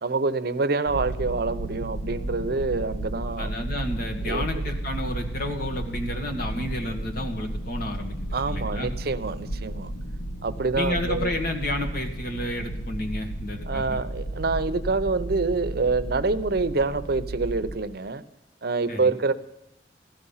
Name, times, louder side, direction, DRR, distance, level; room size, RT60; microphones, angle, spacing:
voice 1, 0.0-3.5 4.2-4.6 8.3-9.9 10.4-11.3 13.6-18.2 18.6-19.3, right 3 dB, 60° right, 12 dB, 0.7 m, -26 dB
sound 1, 0.9-17.8, right 1 dB, 75° left, 1.0 m, -33 dB
voice 2, 3.4-8.1 8.5-8.9 10.8-14.0 18.9-19.1, left 1 dB, 55° left, 3 dB, 1.9 m, -31 dB
15.5 x 12.5 x 5.6 m, 0.90 s
head